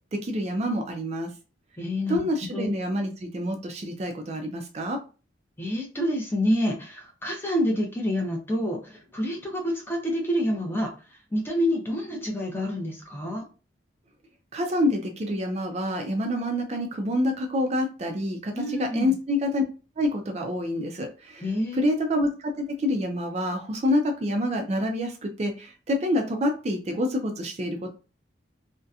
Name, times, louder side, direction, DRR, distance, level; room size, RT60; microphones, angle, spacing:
voice 1, 0.1-1.3 2.1-5.0 14.5-19.6 20.0-21.4 21.7-27.9, left 1 dB, 35° right, 3 dB, 0.4 m, -27 dB
voice 2, 1.8-2.3 2.5-2.8 5.6-10.9 11.3-13.5 18.5-19.1 21.4-21.9, equal, 10° left, 0 dB, 0.5 m, -28 dB
2.7 x 2.1 x 2.3 m, 0.33 s
head